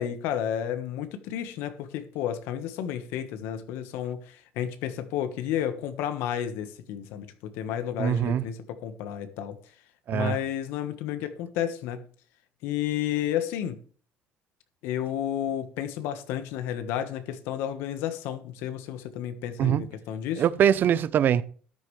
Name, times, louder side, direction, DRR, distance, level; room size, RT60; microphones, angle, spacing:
voice 1, 0.0-7.3 7.5-9.6 10.1-12.0 12.6-13.8 14.8-20.4, left 10 dB, 85° left, 1.3 m, -31 dB
voice 2, 8.0-8.4 10.1-10.4 19.6-19.9 20.4-21.4, right 9 dB, 55° right, 0.7 m, -23 dB
13.0 x 9.7 x 3.3 m
cardioid pair, 100°, 4 cm